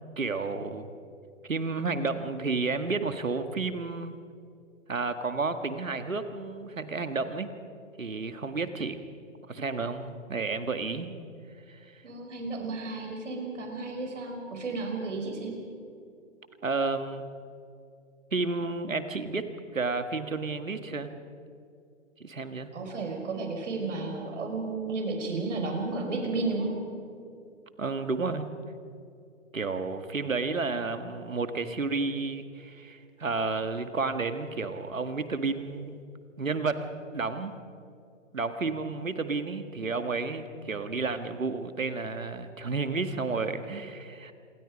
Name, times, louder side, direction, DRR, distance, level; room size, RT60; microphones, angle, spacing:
voice 1, 0.2-0.9 1.5-4.2 4.9-7.6 8.0-9.0 9.5-11.1 11.7-11.8 16.6-17.3 18.3-19.5 19.7-21.1 22.2-22.7 27.8-28.5 29.5-36.0 36.4-36.9 37.1-37.6 38.3-44.3, right 4 dB, 85° right, 9 dB, 1.9 m, -31 dB
voice 2, 12.0-15.6 22.7-26.7, right 3 dB, 65° right, 3 dB, 5.7 m, -33 dB
27.0 x 23.5 x 5.3 m, 2.5 s
figure-of-eight pair, 130°, 39 cm